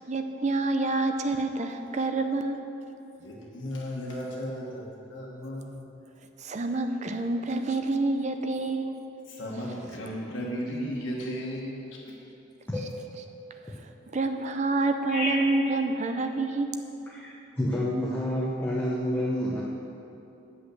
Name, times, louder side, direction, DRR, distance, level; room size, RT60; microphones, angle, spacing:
voice 1, 0.1-2.6 6.4-9.0 14.1-16.8, right 2 dB, 35° right, 7 dB, 0.5 m, -27 dB
voice 2, 3.2-5.9 9.3-12.1, equal, 80° left, -3 dB, 1.3 m, -35 dB
voice 3, 15.1-15.4 17.1-19.6, left 1 dB, 10° left, -7 dB, 0.9 m, -29 dB
8.1 x 5.6 x 7.7 m, 2.9 s
head